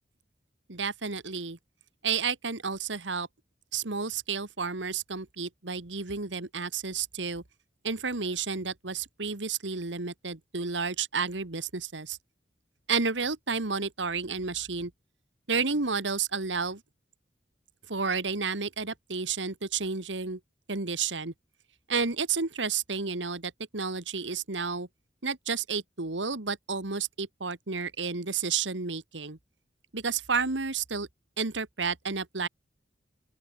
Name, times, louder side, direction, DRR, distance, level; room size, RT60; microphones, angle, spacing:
voice 1, 0.7-1.6 2.0-3.3 3.7-7.4 7.8-12.2 12.9-14.9 15.5-16.8 17.9-20.4 20.7-21.3 21.9-24.9 25.2-29.4 29.9-31.1 31.4-32.5, right 5 dB, 90° right, 1.8 m, -31 dB
open air
head